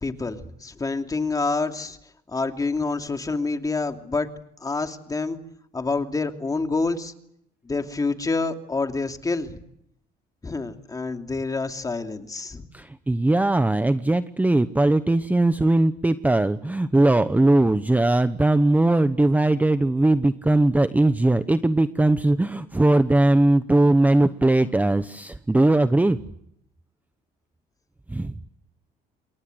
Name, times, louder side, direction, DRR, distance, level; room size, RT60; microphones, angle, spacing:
voice 1, 0.0-2.0 2.3-4.3 4.6-5.4 5.7-7.1 7.6-9.6 10.4-12.7, left 3 dB, 20° left, 6 dB, 2.8 m, -27 dB
voice 2, 12.7-26.2 28.1-28.3, right 2 dB, 10° right, 11 dB, 1.0 m, -20 dB
28.5 x 23.0 x 8.0 m, 0.75 s
cardioid pair, 110°, 17 cm